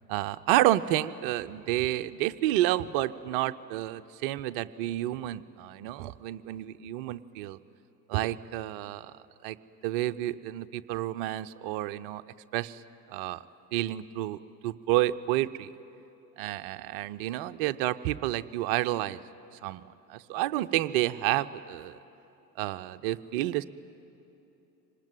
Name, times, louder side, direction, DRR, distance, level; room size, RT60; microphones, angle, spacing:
voice 1, 0.1-7.6 8.1-9.1 9.4-9.6 9.8-12.2 12.5-12.8 13.1-13.4 13.7-15.7 16.4-19.2 19.6-19.8 20.1-22.0 22.6-23.6, right 15 dB, 35° right, 14 dB, 0.5 m, -30 dB
25.5 x 19.5 x 9.2 m, 3.0 s
figure-of-eight pair, 80°, 50 cm